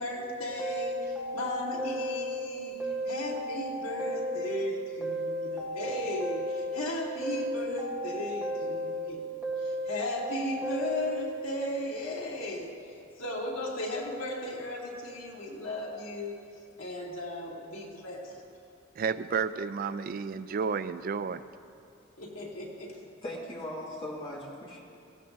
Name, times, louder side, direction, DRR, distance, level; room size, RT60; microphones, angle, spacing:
voice 1, 0.0-9.2 9.6-12.7 13.2-16.4 16.8-18.2 22.2-23.0, left 1 dB, 90° left, -5 dB, 2.7 m, -36 dB
sound 1, 0.6-2.5 2.8-4.7 5.0-6.9 7.2-9.1 9.4-11.3, equal, 5° right, 1.5 m, -34 dB
voice 2, 19.0-21.4, right 6 dB, 45° right, 13 dB, 0.3 m, -31 dB
voice 3, 23.2-24.8, left 1 dB, 25° left, -4 dB, 2.1 m, -38 dB
18.0 x 16.5 x 2.6 m, 2.6 s
head